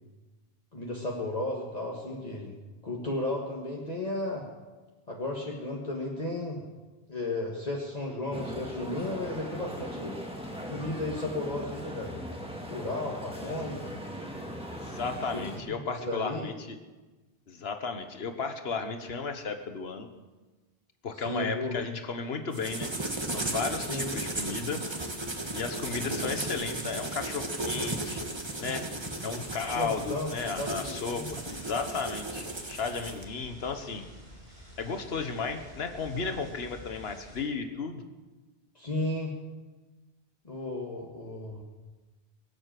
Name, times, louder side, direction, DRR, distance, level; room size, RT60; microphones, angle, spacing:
voice 1, 0.7-2.6 2.8-4.5 5.1-6.6 7.1-10.2 10.7-12.1 12.7-14.0 15.3-15.4 15.7-16.5 21.3-21.8 23.9-24.1 29.8-31.4 38.8-39.3 40.5-41.6, left 2 dB, 40° left, -2 dB, 1.8 m, -34 dB
sound 1, 8.3-15.6, equal, 5° right, 2.0 m, -39 dB
voice 2, 14.7-16.8 17.5-20.1 21.0-22.9 23.3-24.8 25.5-28.2 28.6-28.9 29.2-34.1 34.8-38.0, left 4 dB, 80° left, 7 dB, 1.5 m, -34 dB
sound 2, 22.5-33.2, right 2 dB, 25° right, 1.4 m, -35 dB
sound 3, 29.6-37.4, left 1 dB, 80° right, 6.2 m, -50 dB
23.0 x 8.0 x 7.7 m, 1.2 s
omnidirectional pair, 1.0 m